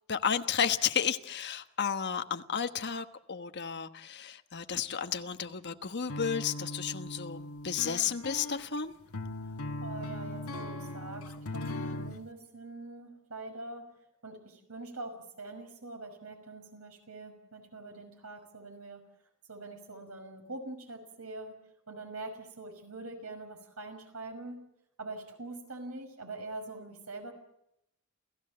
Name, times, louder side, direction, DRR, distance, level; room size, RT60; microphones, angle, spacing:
voice 1, 0.1-8.9, left 7 dB, 50° left, 8 dB, 1.3 m, -32 dB
sound 1, 6.1-12.2, left 1 dB, 90° left, 1.5 m, -39 dB
voice 2, 9.8-13.9 14.2-19.0 19.5-21.6 21.9-24.6 25.0-27.3, right 2 dB, 90° right, 5 dB, 5.9 m, -44 dB
28.5 x 16.0 x 7.7 m, 0.80 s
head